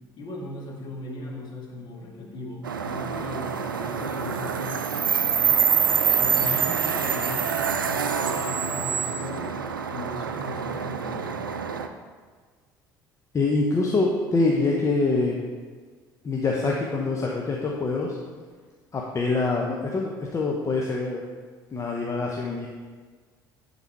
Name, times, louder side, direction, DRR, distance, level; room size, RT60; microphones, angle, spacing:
voice 1, 0.2-4.9 6.2-9.6 9.9-11.4, left 2 dB, 45° left, -1 dB, 2.1 m, -38 dB
sound 1, 2.6-11.9, right 7 dB, 80° right, 0.4 m, -26 dB
voice 2, 13.3-15.4 16.2-18.2 18.9-21.2 21.7-22.7, left 3 dB, 30° left, -1 dB, 0.9 m, -25 dB
10.5 x 4.1 x 4.6 m, 1.5 s
figure-of-eight pair, 55°, 11 cm